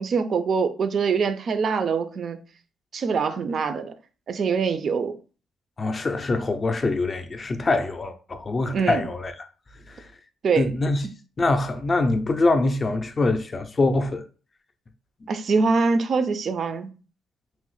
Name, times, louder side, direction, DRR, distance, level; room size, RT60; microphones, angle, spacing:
voice 1, 0.0-2.4 2.9-3.9 4.3-5.2 8.7-9.0 10.4-10.7 15.3-16.9, right 5 dB, 55° right, 0.3 m, -24 dB
voice 2, 5.8-9.3 9.9-10.1 10.6-11.0 11.4-14.2, left 2 dB, 35° left, 0.4 m, -24 dB
3.0 x 2.0 x 3.0 m
cardioid pair, 90°, 0 cm